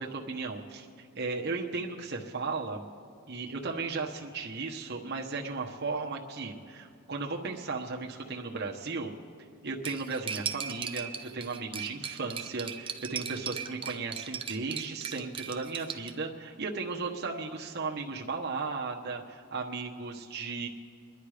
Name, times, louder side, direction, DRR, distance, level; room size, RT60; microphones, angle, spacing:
voice 1, 0.0-2.8 3.3-9.1 9.6-20.7, right 4 dB, 50° right, 0 dB, 1.2 m, -35 dB
Cutlery silverware, 9.8-16.1, right 7 dB, 25° right, 0.6 m, -38 dB
27.0 x 10.5 x 5.0 m, 2.3 s
head